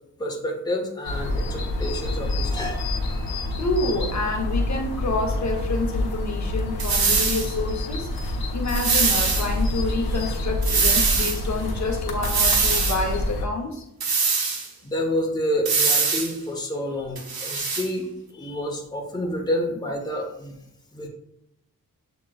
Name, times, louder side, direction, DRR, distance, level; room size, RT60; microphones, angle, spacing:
voice 1, 0.2-3.2 14.8-18.0 18.3-20.5 20.9-21.1, left 1 dB, 10° left, 0 dB, 0.8 m, -29 dB
sound 1, 1.0-13.5, left 1 dB, 85° left, 0.9 m, -27 dB
voice 2, 3.6-13.8, left 3 dB, 50° left, 1 dB, 0.8 m, -28 dB
sound 2, 6.8-7.5 8.7-9.5 10.6-11.4 12.2-13.0 14.0-14.7 15.7-16.3 17.2-17.9, right 5 dB, 80° right, 0.8 m, -22 dB
7.4 x 3.0 x 2.3 m, 0.83 s
wide cardioid pair, 95°, 36 cm